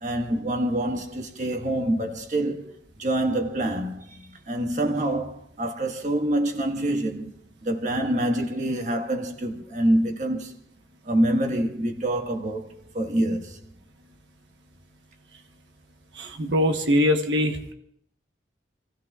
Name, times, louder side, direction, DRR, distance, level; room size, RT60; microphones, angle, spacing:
voice 1, 0.0-2.7 3.0-7.3 7.6-10.5 11.0-13.6, right 1 dB, 45° right, 1.5 m, -26 dB
voice 2, 16.2-17.7, left 1 dB, 90° right, 1.2 m, -22 dB
29.5 x 16.5 x 2.4 m
head